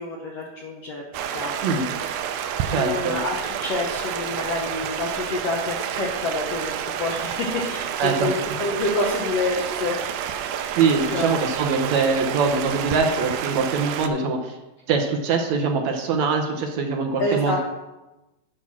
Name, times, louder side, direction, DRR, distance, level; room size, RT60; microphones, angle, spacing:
voice 1, 0.0-1.8 2.7-10.5 11.0-11.4 17.2-17.6, left 2 dB, 75° left, 0 dB, 1.4 m, -28 dB
Stream, 1.1-14.1, right 9 dB, 90° right, 2.4 m, -29 dB
voice 2, 2.7-3.2 8.0-8.4 10.7-14.6 14.9-17.6, right 4 dB, 70° right, 3 dB, 1.7 m, -23 dB
7.8 x 5.8 x 6.2 m, 1.0 s
omnidirectional pair, 4.0 m